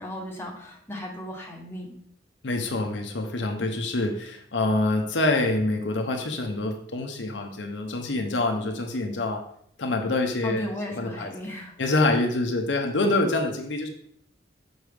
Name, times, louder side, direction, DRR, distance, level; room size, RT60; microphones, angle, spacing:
voice 1, 0.0-1.9 10.4-11.7, equal, 15° left, -2 dB, 1.1 m, -35 dB
voice 2, 2.4-9.4 9.8-10.7 11.0-11.3 11.8-13.9, left 2 dB, 80° left, 3 dB, 0.8 m, -26 dB
6.5 x 4.4 x 3.4 m, 0.66 s
head